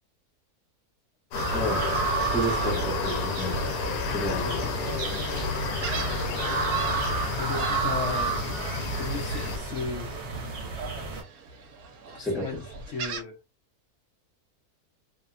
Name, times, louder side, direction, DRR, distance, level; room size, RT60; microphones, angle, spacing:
sound 1, 1.3-9.6, left 4 dB, 85° left, 1.1 m, -31 dB
sound 2, 1.3-11.2, right 4 dB, 55° right, 1.1 m, -31 dB
voice 1, 1.5-1.9 2.2-3.7 4.1-4.5 12.2-12.6, right 1 dB, ahead, 0.7 m, -31 dB
Gull seagull, 1.6-13.2, right 5 dB, 75° right, 1.1 m, -43 dB
voice 2, 4.1-4.7 7.4-8.3 9.0-10.1 12.1-13.3, left 4 dB, 65° left, 0.9 m, -35 dB
2.8 x 2.1 x 2.4 m
omnidirectional pair, 1.6 m